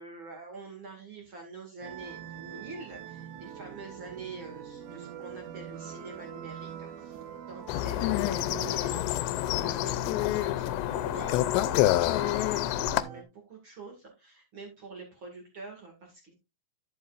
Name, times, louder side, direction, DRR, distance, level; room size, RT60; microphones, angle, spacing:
voice 1, 0.0-7.2 7.5-16.3, right 3 dB, 40° right, 1 dB, 1.9 m, -45 dB
sound 1, 1.8-13.2, right 9 dB, 70° right, 2.1 m, -44 dB
sound 2, 7.7-13.0, left 15 dB, 85° left, 2.8 m, -27 dB
11.0 x 7.3 x 2.5 m, 0.24 s
omnidirectional pair, 4.9 m